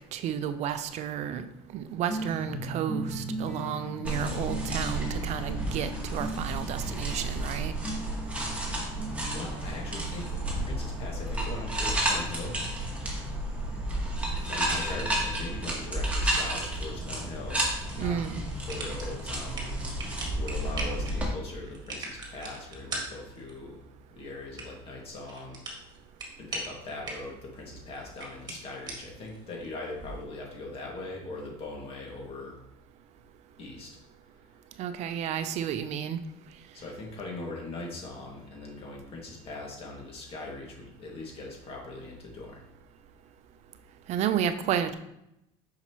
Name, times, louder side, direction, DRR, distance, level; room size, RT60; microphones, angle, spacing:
voice 1, 0.1-1.5 1.7-7.7 18.0-18.4 34.8-36.2 44.1-44.9, right 9 dB, 55° right, 10 dB, 0.6 m, -31 dB
sound 1, 2.1-10.5, right 1 dB, 15° left, 1.6 m, -38 dB
sound 2, 4.0-21.3, right 1 dB, 10° right, 1.7 m, -32 dB
voice 2, 9.3-12.6 14.5-18.2 18.7-19.6 20.4-23.8 24.2-25.6 26.4-32.6 33.6-33.9 36.7-42.6, left 2 dB, 45° left, -1 dB, 2.1 m, -40 dB
sound 3, 18.3-30.3, right 2 dB, 30° right, 1.8 m, -42 dB
5.7 x 5.7 x 3.0 m, 0.84 s
supercardioid pair, 110°, 14 cm